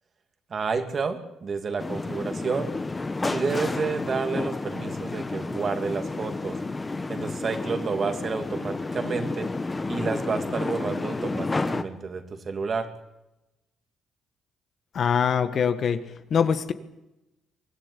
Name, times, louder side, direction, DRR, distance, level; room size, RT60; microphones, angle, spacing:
voice 1, 0.5-2.7 3.2-6.6 7.1-9.5 9.9-12.9, right 5 dB, 45° right, 7 dB, 2.7 m, -30 dB
sound 1, 1.8-11.8, left 3 dB, 20° left, 1.3 m, -31 dB
voice 2, 14.9-16.0 16.3-16.7, left 7 dB, 55° left, 10 dB, 1.7 m, -23 dB
24.0 x 15.0 x 9.9 m, 0.95 s
cardioid pair, 90°, 0 cm